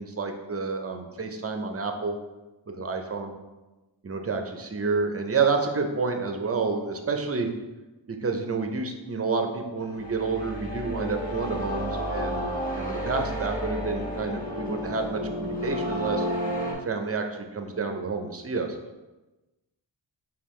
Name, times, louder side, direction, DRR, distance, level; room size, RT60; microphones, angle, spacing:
voice 1, 0.0-2.2 2.7-3.3 4.0-7.5 8.1-16.3 16.7-18.8, right 4 dB, 30° right, 4 dB, 0.5 m, -29 dB
sound 1, 9.8-16.7, equal, 20° left, 1.2 m, -31 dB
5.3 x 2.3 x 3.1 m, 1.1 s
wide cardioid pair, 40°, 47 cm